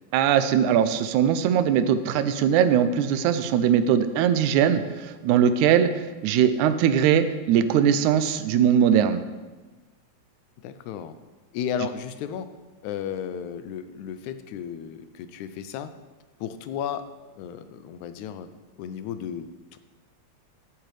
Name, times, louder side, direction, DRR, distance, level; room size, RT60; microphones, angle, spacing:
voice 1, 0.1-9.2, right 8 dB, 85° right, 11 dB, 2.0 m, -21 dB
voice 2, 10.6-11.2 11.5-12.5 12.8-15.9 16.4-17.0 17.4-18.5 18.8-19.8, left 8 dB, 85° left, 11 dB, 2.0 m, -34 dB
13.5 x 7.7 x 3.3 m, 1.2 s
omnidirectional pair, 3.4 m